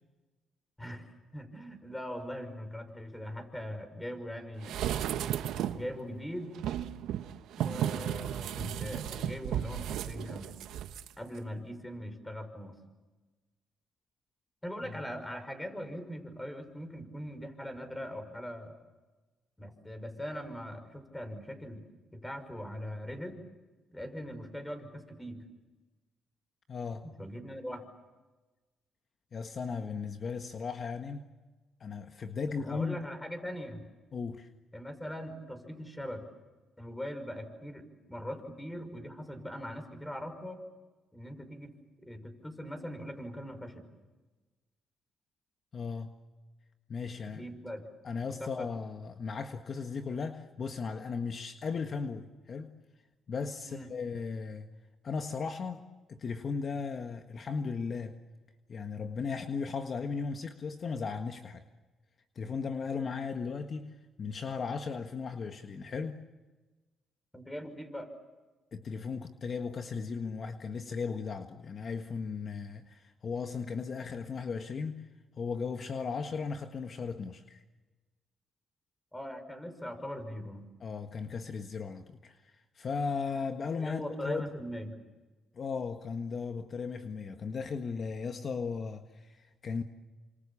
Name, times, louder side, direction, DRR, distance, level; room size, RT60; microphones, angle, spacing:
voice 1, 1.3-4.8 5.7-6.6 7.6-10.6 11.2-12.8 14.6-18.7 19.6-21.8 22.1-23.4 23.9-25.5 27.0-27.9 32.6-33.8 34.7-36.3 36.8-40.6 41.1-41.7 42.0-43.9 47.3-47.9 48.4-48.7 53.6-53.9 67.3-68.1 79.1-80.7 83.8-85.0, equal, 10° left, 5.8 m, -41 dB
sound 1, 4.6-5.9 6.6-11.1 11.4-11.5, right 11 dB, 85° right, 1.2 m, -34 dB
voice 2, 26.7-27.0 29.3-31.3 31.8-33.0 34.1-34.5 45.7-46.2 46.9-47.4 48.0-52.8 53.3-54.7 55.0-58.2 58.7-61.6 62.3-66.2 68.7-75.1 75.4-77.6 80.8-84.5 85.5-89.8, left 5 dB, 45° left, 1.6 m, -36 dB
29.0 x 26.0 x 7.3 m
cardioid pair, 90°, 0 cm